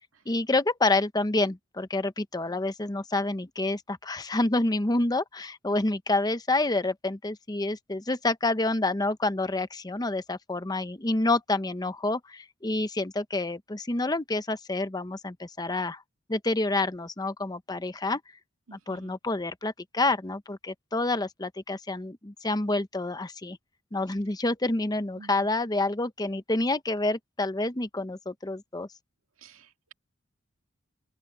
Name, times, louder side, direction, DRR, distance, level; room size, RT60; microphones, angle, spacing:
voice 1, 0.3-16.0 16.3-18.2 18.7-23.6 23.9-28.9, left 2 dB, 20° left, 0.8 m, -28 dB
voice 2, 18.7-19.2 25.2-25.5 29.4-29.9, right 4 dB, 85° right, 2.3 m, -52 dB
open air
head